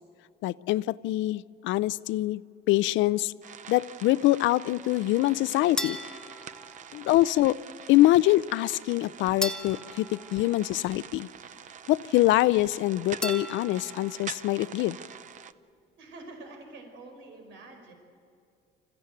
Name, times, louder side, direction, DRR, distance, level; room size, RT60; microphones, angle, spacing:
voice 1, 0.4-2.4 2.7-3.3 3.7-6.0 6.9-7.6 7.9-11.3 11.9-15.0, left 16 dB, 85° left, 18 dB, 0.5 m, -24 dB
sound 1, 3.4-15.5, right 8 dB, 40° right, 0.7 m, -45 dB
sound 2, 5.8-7.3 9.4-11.2 13.2-14.3, left 1 dB, 5° left, 1.1 m, -37 dB
voice 2, 16.0-17.9, right 2 dB, 80° right, 3 dB, 4.9 m, -46 dB
27.5 x 15.5 x 9.2 m, 2.4 s
cardioid pair, 165°, 19 cm